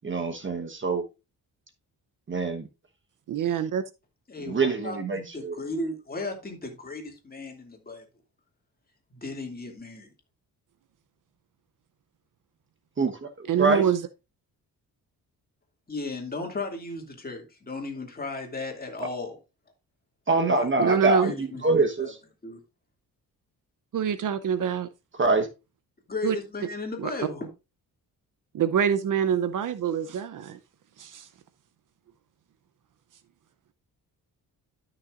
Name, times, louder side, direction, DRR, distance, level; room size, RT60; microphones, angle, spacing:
voice 1, 0.0-1.0 2.3-2.7 4.4-5.6 13.0-13.8 20.3-22.2 25.2-25.5, right 3 dB, 30° right, 1.2 m, -25 dB
voice 2, 3.3-3.8 13.5-14.0 20.8-21.3 23.9-24.9 26.2-26.4 27.0-27.1 28.5-30.6 31.0-31.3, right 8 dB, 60° right, 0.7 m, -25 dB
voice 3, 4.3-8.0 9.1-10.1 15.9-19.4 20.5-20.7 21.2-22.1 22.4-22.6 26.1-27.5, left 2 dB, 25° left, 2.5 m, -35 dB
13.0 x 6.1 x 2.5 m
cardioid pair, 110°, 37 cm